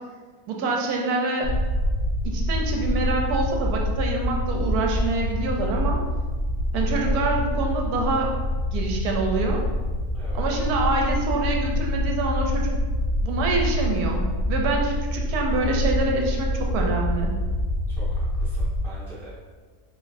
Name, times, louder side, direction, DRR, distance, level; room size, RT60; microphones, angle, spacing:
voice 1, 0.5-1.5 2.2-6.0 6.7-8.3 8.7-9.6 10.4-12.7 13.2-17.3, right 3 dB, 80° right, 0 dB, 1.1 m, -26 dB
sound 1, 1.4-18.8, left 1 dB, 50° left, 0.5 m, -26 dB
voice 2, 17.9-19.4, right 1 dB, ahead, -9 dB, 1.2 m, -44 dB
4.0 x 3.5 x 2.5 m, 1.4 s
omnidirectional pair, 1.6 m